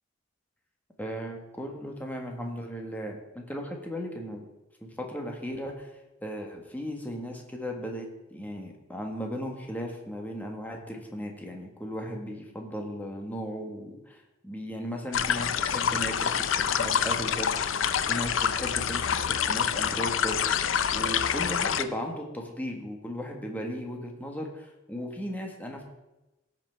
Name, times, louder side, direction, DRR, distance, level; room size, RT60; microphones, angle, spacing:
voice 1, 1.0-4.4 4.8-5.9 6.2-14.2 14.4-25.8, equal, 10° left, 1 dB, 1.6 m, -36 dB
sound 1, 15.1-21.8, left 8 dB, 85° left, 0.6 m, -27 dB
16.5 x 6.0 x 4.6 m, 0.99 s
head